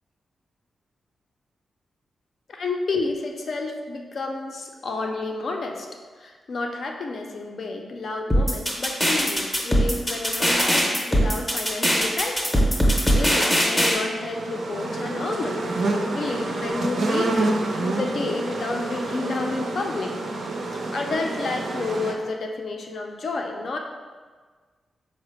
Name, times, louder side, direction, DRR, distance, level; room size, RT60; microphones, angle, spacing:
voice 1, 2.5-5.9 6.2-15.7 16.1-20.1 20.9-23.8, left 3 dB, 50° left, 2 dB, 0.4 m, -30 dB
sound 1, 8.3-13.9, equal, 10° left, 0.6 m, -20 dB
sound 2, 14.2-22.1, right 2 dB, 60° right, 0.5 m, -28 dB
4.7 x 2.1 x 4.4 m, 1.5 s
wide cardioid pair, 175°, 0 cm